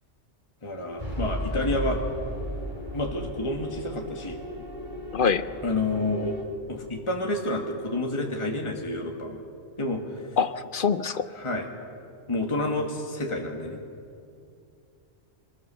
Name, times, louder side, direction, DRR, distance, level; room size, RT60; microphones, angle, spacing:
voice 1, 0.6-2.0 2.9-4.4 5.6-6.4 6.7-9.4 9.8-10.2 11.4-11.7 12.3-13.8, left 2 dB, 25° left, 1 dB, 1.8 m, -29 dB
sound 1, 1.0-6.4, equal, 40° right, 3.7 m, -35 dB
voice 2, 5.1-5.5 10.4-11.3, left 6 dB, 55° left, 13 dB, 0.8 m, -24 dB
25.5 x 21.0 x 6.9 m, 2.6 s
omnidirectional pair, 1.2 m